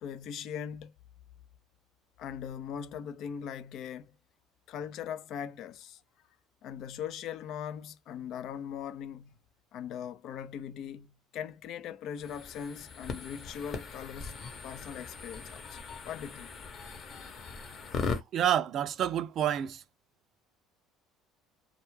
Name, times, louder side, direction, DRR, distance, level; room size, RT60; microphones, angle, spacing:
voice 1, 0.0-0.9 2.2-4.1 4.7-6.0 6.6-9.4 9.7-16.5, left 8 dB, 60° left, 0.4 m, -40 dB
sound 1, 12.2-18.2, left 4 dB, 45° left, 0.9 m, -39 dB
voice 2, 18.1-19.8, right 10 dB, 55° right, 0.4 m, -29 dB
2.2 x 2.2 x 3.0 m
supercardioid pair, 90°, 0 cm